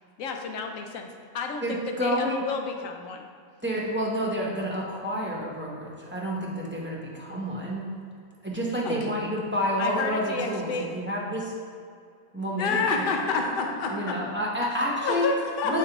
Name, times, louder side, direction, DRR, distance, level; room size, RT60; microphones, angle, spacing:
voice 1, 0.2-1.1 1.3-3.3 9.8-10.9, left 4 dB, 70° left, 4 dB, 1.0 m, -32 dB
voice 2, 1.6-2.4 3.6-7.9 8.4-11.5 12.3-13.0 13.9-15.3 15.6-15.8, equal, 10° right, -5 dB, 0.6 m, -29 dB
voice 3, 12.6-14.2 15.0-15.8, left 4 dB, 50° left, 1 dB, 0.7 m, -26 dB
7.2 x 5.2 x 2.9 m, 2.2 s
omnidirectional pair, 1.5 m